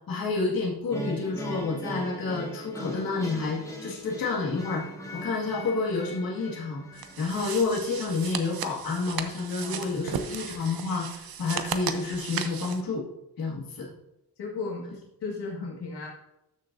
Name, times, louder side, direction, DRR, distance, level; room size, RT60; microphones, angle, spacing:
voice 1, 0.1-4.8 5.1-6.8 7.2-13.0 13.4-13.9, left 3 dB, 55° left, -3 dB, 2.1 m, -29 dB
sound 1, 0.9-8.0, left 1 dB, 5° left, 1.3 m, -39 dB
sound 2, 6.9-12.8, right 7 dB, 60° right, 0.8 m, -36 dB
voice 2, 9.6-10.3 14.4-14.8 15.2-16.1, left 4 dB, 80° left, -2 dB, 2.0 m, -36 dB
13.5 x 6.4 x 2.7 m, 0.89 s
wide cardioid pair, 125°, 40 cm